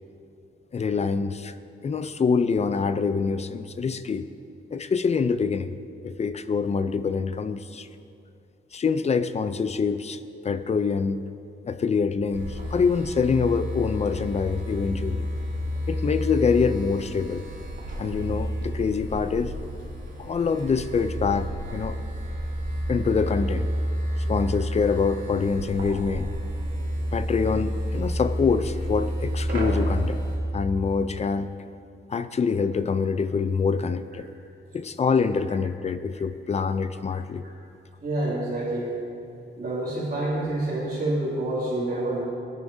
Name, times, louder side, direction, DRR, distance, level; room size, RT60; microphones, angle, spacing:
voice 1, 0.7-1.5 1.8-4.3 4.7-5.7 6.0-7.9 8.7-11.2 11.6-15.3 15.9-17.4 18.0-19.5 20.2-22.0 22.9-23.7 24.3-26.3 27.1-30.2 30.5-31.5 32.1-34.3 34.7-37.4, left 5 dB, 35° left, 11 dB, 0.4 m, -25 dB
sound 1, 12.3-30.4, equal, 70° right, 2.6 m, -30 dB
voice 2, 38.0-39.0 39.6-42.2, right 1 dB, 50° right, -10 dB, 2.6 m, -27 dB
21.0 x 9.5 x 2.7 m, 2.6 s
wide cardioid pair, 170°, 20 cm